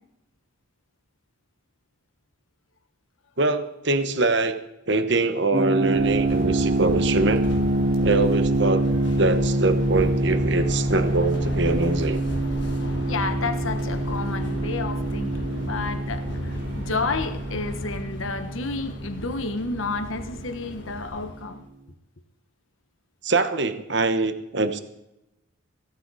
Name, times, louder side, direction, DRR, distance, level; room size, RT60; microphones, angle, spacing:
voice 1, 3.4-4.6 4.9-7.5 8.0-8.8 9.2-12.2 23.2-24.8, right 3 dB, 55° right, 9 dB, 1.1 m, -23 dB
sound 1, 5.5-20.3, right 2 dB, 40° right, 0.7 m, -26 dB
sound 2, 5.8-21.6, left 1 dB, 60° left, 1.5 m, -37 dB
sound 3, 5.9-18.0, equal, 90° right, 3.3 m, -36 dB
voice 2, 13.0-21.6, left 3 dB, 75° left, 8 dB, 1.2 m, -31 dB
16.5 x 14.5 x 4.1 m, 0.90 s
head